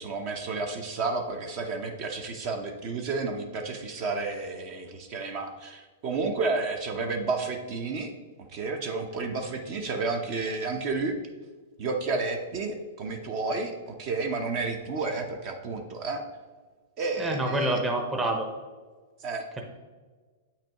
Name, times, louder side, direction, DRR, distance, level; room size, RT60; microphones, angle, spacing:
voice 1, 0.0-8.1 8.5-11.2 11.8-16.2 17.0-17.8 19.2-19.6, right 3 dB, 40° right, 5 dB, 0.8 m, -31 dB
voice 2, 17.2-18.5, right 1 dB, 10° right, 2 dB, 0.8 m, -27 dB
8.5 x 5.8 x 3.0 m, 1.4 s
hypercardioid pair, 150°, 0 cm